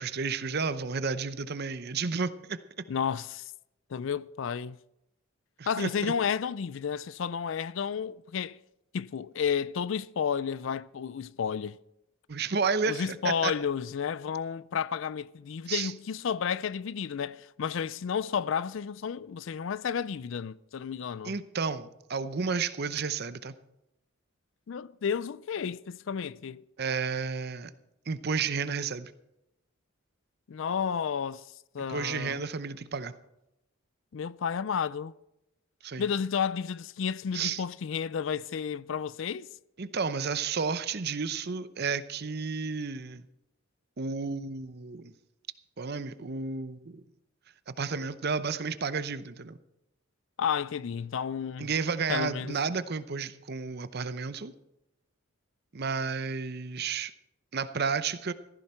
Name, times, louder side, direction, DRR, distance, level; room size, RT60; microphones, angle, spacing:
voice 1, 0.0-2.6 5.6-6.1 12.3-13.5 15.7-15.9 21.2-23.6 26.8-27.7 28.1-29.1 31.9-33.1 35.8-36.1 37.3-37.6 39.8-43.2 44.0-45.1 45.8-47.0 47.7-49.6 51.6-54.5 55.7-57.1 57.5-58.3, right 5 dB, 50° right, 0.7 m, -32 dB
voice 2, 2.9-3.5 3.9-4.8 5.7-8.6 8.9-11.8 12.9-21.3 24.7-26.6 30.5-31.4 31.7-32.4 34.1-35.1 36.0-39.5 50.4-51.7 52.1-52.6, left 7 dB, 65° left, 0.4 m, -32 dB
15.5 x 14.0 x 4.4 m
head